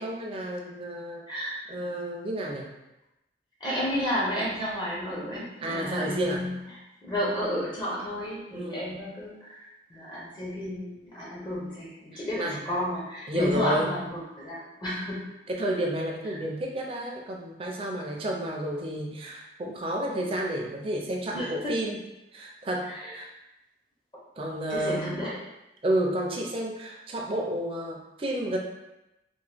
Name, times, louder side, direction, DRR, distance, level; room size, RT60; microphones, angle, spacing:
voice 1, 0.0-1.2 1.7-2.7 5.6-6.5 8.5-8.9 12.4-12.6 13.3-13.9 15.5-22.0 22.3-23.3 24.4-25.2 25.8-28.6, right 1 dB, 30° right, 0 dB, 0.4 m, -31 dB
voice 2, 1.3-1.6 3.6-6.5 7.0-15.3 21.3-21.8 22.8-23.2 24.7-25.4, equal, 25° left, -6 dB, 0.6 m, -32 dB
2.9 x 2.1 x 3.3 m, 0.93 s
head